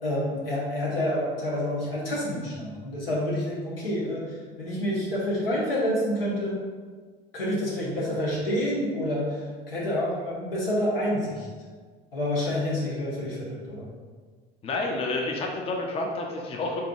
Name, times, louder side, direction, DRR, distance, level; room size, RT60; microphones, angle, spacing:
voice 1, 0.0-4.2 4.6-6.6 7.3-9.4 9.7-11.5 12.1-13.9, left 1 dB, 75° left, -5 dB, 1.2 m, -28 dB
voice 2, 14.6-16.8, left 2 dB, 20° left, 1 dB, 0.5 m, -29 dB
4.1 x 3.6 x 2.4 m, 1.5 s
figure-of-eight pair, 70°, 29 cm